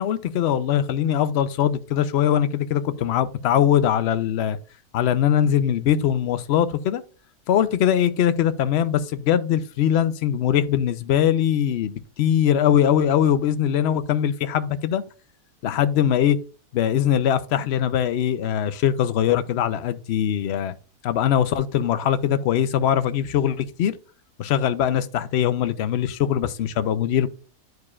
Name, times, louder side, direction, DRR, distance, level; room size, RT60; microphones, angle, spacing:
voice 1, 0.0-4.6 4.9-7.0 7.5-15.0 15.6-16.4 16.7-20.7 21.0-23.9 24.4-27.3, left 10 dB, 65° left, 0.7 m, -21 dB
10.5 x 4.8 x 2.4 m
omnidirectional pair, 1.6 m